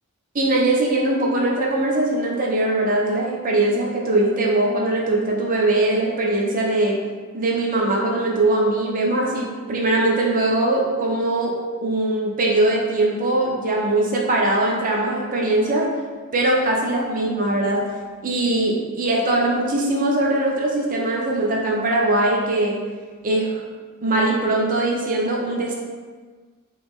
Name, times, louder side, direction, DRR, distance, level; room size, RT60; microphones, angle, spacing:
voice 1, 0.3-7.0 7.3-11.5 11.8-15.9 16.3-17.8 18.2-22.8 23.2-23.6 24.0-25.7, right 2 dB, 40° right, -2 dB, 0.6 m, -21 dB
3.1 x 2.9 x 3.6 m, 1.5 s
head